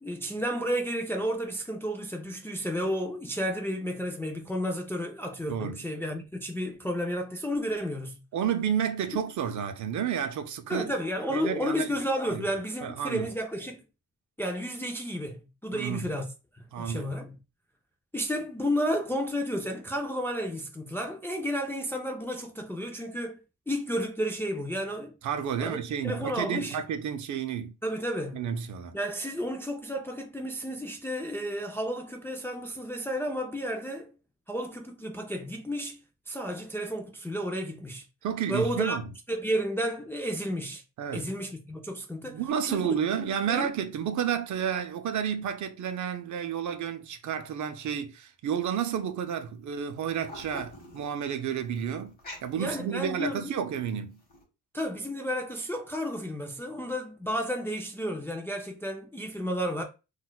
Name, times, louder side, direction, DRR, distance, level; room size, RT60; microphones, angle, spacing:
voice 1, 0.0-8.2 10.7-13.8 14.4-16.3 16.6-17.4 18.1-23.4 23.7-25.1 25.6-25.8 26.0-26.8 27.8-28.4 28.9-34.1 34.5-36.0 36.3-38.0 38.5-39.0 39.3-40.8 41.1-42.9 43.2-43.7 52.6-53.5 54.7-59.8, equal, 5° left, 0.3 m, -32 dB
voice 2, 5.5-5.8 8.3-10.9 11.3-11.9 12.3-12.4 12.8-13.3 15.7-16.1 16.7-17.1 25.2-27.7 28.3-29.0 38.2-39.1 41.0-41.3 42.2-52.1 52.4-54.2, right 8 dB, 60° right, 0.5 m, -31 dB
sound 1, 49.3-49.4 49.7-53.4 53.9-54.4, left 1 dB, 25° left, 1.0 m, -46 dB
3.9 x 2.3 x 2.2 m
cardioid pair, 145°, 33 cm